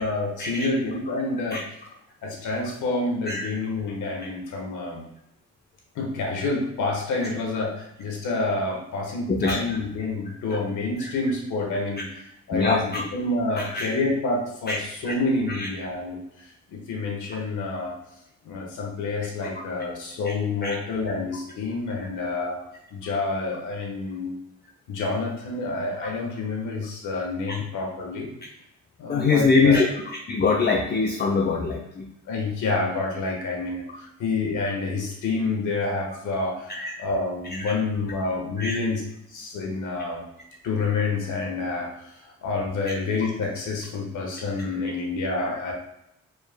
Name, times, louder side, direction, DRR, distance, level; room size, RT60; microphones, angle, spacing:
voice 1, 0.0-1.6 2.2-5.0 5.9-17.9 18.4-22.6 22.9-24.3 24.9-28.3 29.0-29.8 32.3-39.0 39.3-40.2 40.6-45.7, left 3 dB, 85° left, 0 dB, 1.3 m, -28 dB
voice 2, 12.5-13.0 13.6-13.9 14.7-14.8 15.1-15.2 15.5-15.7 20.2-20.3 20.6-20.8 22.2-22.3 29.1-32.1 36.7-36.9 37.4-37.7 38.6-38.8, left 4 dB, 35° left, 0 dB, 0.6 m, -23 dB
5.0 x 4.8 x 2.2 m, 0.83 s
cardioid pair, 80°, 29 cm